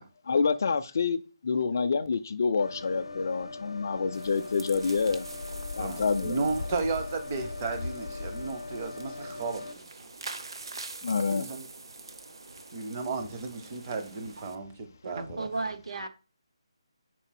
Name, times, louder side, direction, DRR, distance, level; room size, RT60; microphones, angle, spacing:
voice 1, 0.3-5.3 5.7-6.5 11.0-11.5, left 5 dB, 35° left, 0.4 m, -27 dB
sound 1, 2.6-9.8, left 3 dB, 75° left, 0.7 m, -39 dB
sound 2, 4.1-14.6, right 3 dB, 55° right, 0.8 m, -45 dB
voice 2, 5.8-9.8 11.3-11.7 12.7-15.5, right 4 dB, 15° right, 0.5 m, -34 dB
voice 3, 15.0-16.1, right 3 dB, 80° right, 1.1 m, -34 dB
4.9 x 4.5 x 5.8 m
hypercardioid pair, 175°, 3 cm